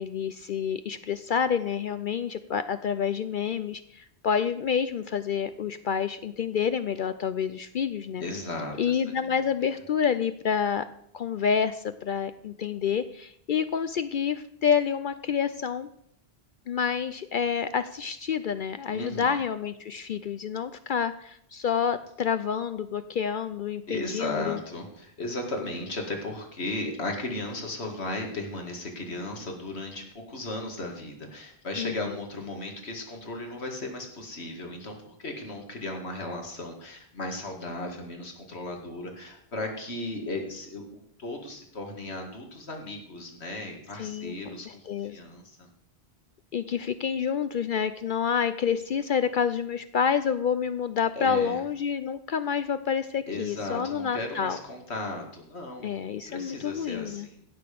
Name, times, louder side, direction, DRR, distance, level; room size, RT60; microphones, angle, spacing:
voice 1, 0.0-8.2 8.8-10.8 11.1-15.9 16.7-24.6 31.8-32.1 44.0-44.4 44.9-45.2 46.5-54.6 55.8-57.3, left 7 dB, 60° left, 11 dB, 0.6 m, -28 dB
voice 2, 8.2-9.3 18.9-19.4 23.9-45.7 51.2-51.6 53.3-57.4, left 2 dB, 80° left, 2 dB, 2.3 m, -36 dB
16.0 x 6.7 x 5.2 m, 0.71 s
omnidirectional pair, 1.1 m